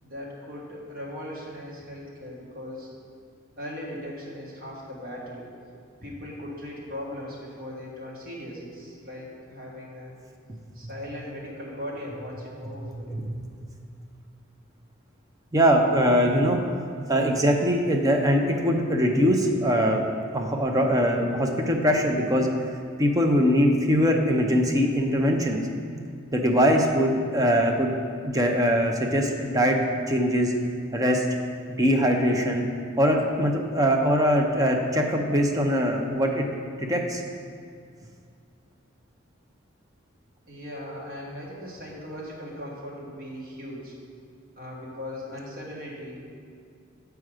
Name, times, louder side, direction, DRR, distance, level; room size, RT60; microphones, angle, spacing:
voice 1, 0.0-2.9 3.6-5.5 6.0-10.1 10.7-13.2 40.5-43.9 44.5-46.2, left 1 dB, 50° right, -4 dB, 1.5 m, -38 dB
voice 2, 15.5-16.6 17.1-20.0 20.3-25.6 26.3-27.9 28.2-29.8 30.1-30.5 30.9-31.3 31.8-32.6 33.0-36.5 36.8-37.2, equal, 20° right, 2 dB, 0.6 m, -22 dB
7.6 x 4.7 x 4.9 m, 2.3 s
head